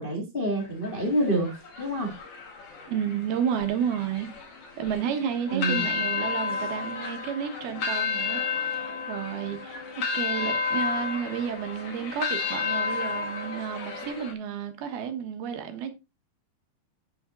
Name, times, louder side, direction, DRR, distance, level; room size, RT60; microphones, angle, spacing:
voice 1, 0.0-2.1 5.5-5.9, right 1 dB, 30° left, 1.0 m, -27 dB
sound 1, 0.6-14.3, left 5 dB, 45° left, 2.7 m, -32 dB
voice 2, 2.9-4.3 4.8-15.9, right 8 dB, 90° right, 3.3 m, -31 dB
8.5 x 7.2 x 3.7 m
omnidirectional pair, 4.3 m